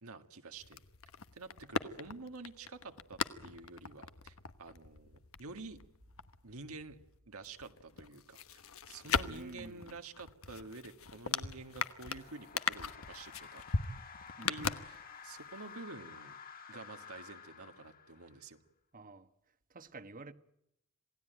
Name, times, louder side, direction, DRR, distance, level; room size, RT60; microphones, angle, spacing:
voice 1, 0.0-0.8 1.3-5.8 6.4-7.0 7.3-13.6 14.5-16.4 16.7-18.6, right 3 dB, 80° right, 1.8 m, -49 dB
sound 1, 0.6-7.1 7.4-15.4 15.7-15.8, left 5 dB, 70° left, 1.2 m, -40 dB
voice 2, 9.3-10.0 14.4-14.7 18.9-19.3 19.7-20.3, right 2 dB, 40° right, 1.2 m, -50 dB
sound 2, 11.4-18.5, left 6 dB, 40° left, 2.8 m, -52 dB
27.5 x 18.0 x 9.2 m
head